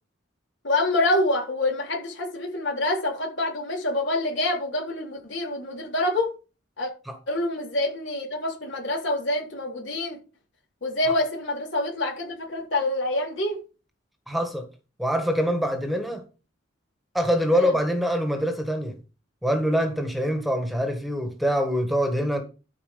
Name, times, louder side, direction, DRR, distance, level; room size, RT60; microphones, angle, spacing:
voice 1, 0.6-6.3 6.8-6.9 7.3-10.2 10.8-13.6 17.5-17.7, left 1 dB, 70° left, 3.8 m, -26 dB
voice 2, 14.3-14.6 15.0-16.2 17.1-19.0 19.4-22.4, equal, ahead, 1.5 m, -24 dB
12.5 x 4.9 x 5.1 m
head